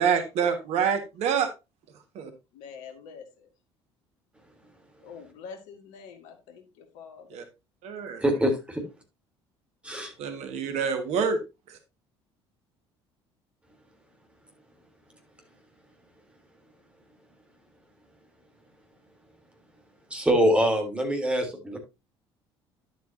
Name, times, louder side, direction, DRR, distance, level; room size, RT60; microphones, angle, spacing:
voice 1, 0.0-1.5 2.2-2.3 7.3-7.4 7.8-8.2 10.2-11.4 11.7-11.8, right 7 dB, 50° right, 8 dB, 1.6 m, -26 dB
voice 2, 2.5-3.5 5.0-7.4, left 6 dB, 60° left, 7 dB, 1.8 m, -45 dB
voice 3, 8.2-8.8 9.8-10.1 20.1-21.8, equal, 10° right, 2 dB, 3.3 m, -24 dB
11.0 x 8.1 x 2.7 m, 0.25 s
figure-of-eight pair, 55°, 14 cm